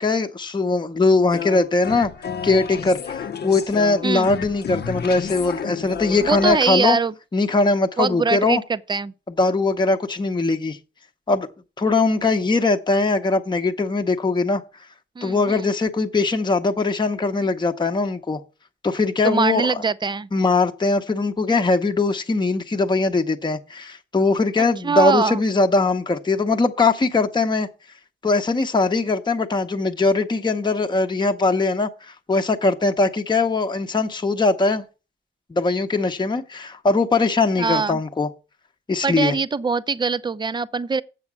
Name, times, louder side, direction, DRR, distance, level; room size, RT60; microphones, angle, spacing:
voice 1, 0.0-2.1 2.4-7.0 7.3-8.6 9.3-10.8 11.3-11.5 11.8-14.6 15.2-18.4 18.8-19.7 20.3-27.7 28.2-31.9 32.3-34.8 35.5-38.3 38.9-39.3, left 3 dB, 20° left, 0.8 m, -21 dB
sound 1, 1.3-6.6, left 7 dB, 55° left, 0.7 m, -31 dB
voice 2, 6.2-7.1 8.0-9.1 15.2-15.7 19.2-20.3 24.8-25.4 37.6-38.0 39.0-41.0, right 4 dB, 20° right, 0.5 m, -22 dB
7.6 x 7.2 x 6.0 m
cardioid pair, 80°, 20 cm